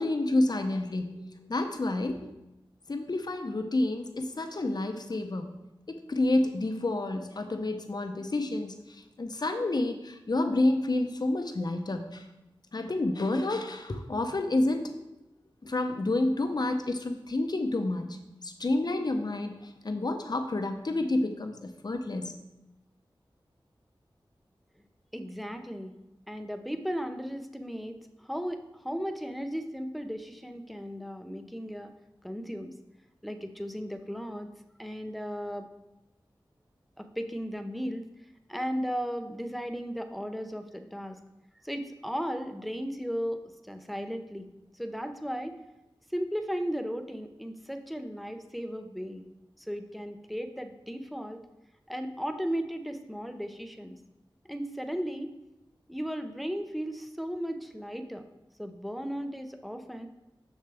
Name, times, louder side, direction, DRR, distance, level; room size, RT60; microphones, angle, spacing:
voice 1, 0.0-2.2 2.9-5.5 5.9-8.7 9.2-12.2 12.7-14.9 15.6-18.2 18.4-22.3, left 2 dB, 50° left, 6 dB, 0.7 m, -29 dB
voice 2, 25.1-25.9 26.3-31.9 32.2-32.8 33.2-34.5 34.8-35.7 37.0-38.0 38.5-41.2 41.6-44.5 44.7-45.5 46.1-49.3 49.6-51.4 51.9-54.0 54.5-55.3 55.9-58.2 58.6-60.1, equal, ahead, 7 dB, 0.6 m, -35 dB
6.7 x 6.4 x 3.4 m, 0.93 s
wide cardioid pair, 65°, 9 cm